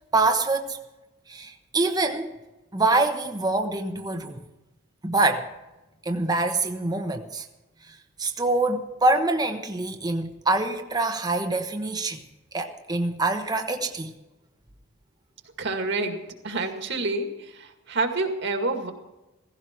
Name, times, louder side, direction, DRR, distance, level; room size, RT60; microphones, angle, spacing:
voice 1, 0.1-0.8 1.3-2.3 2.7-4.4 5.0-5.5 6.0-7.4 8.2-12.2 12.5-14.1, right 2 dB, 20° right, 1.0 m, -25 dB
voice 2, 15.6-18.9, right 3 dB, 55° right, 2.1 m, -28 dB
16.5 x 16.0 x 4.5 m
head